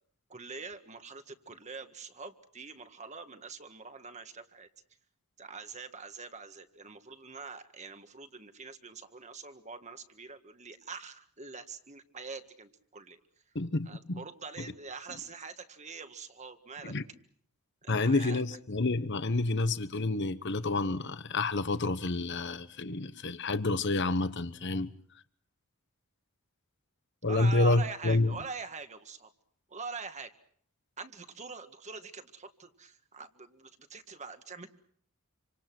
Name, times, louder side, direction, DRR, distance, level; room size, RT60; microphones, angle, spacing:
voice 1, 0.3-4.7 5.4-13.2 13.5-13.6 13.9-17.0 17.8-18.4 27.3-29.3 29.7-30.3 31.0-34.7, right 4 dB, 30° right, 1.7 m, -44 dB
voice 2, 13.5-14.2 16.8-17.0 17.9-24.9 27.2-28.3, left 2 dB, 55° left, 1.2 m, -29 dB
27.5 x 26.0 x 6.2 m
head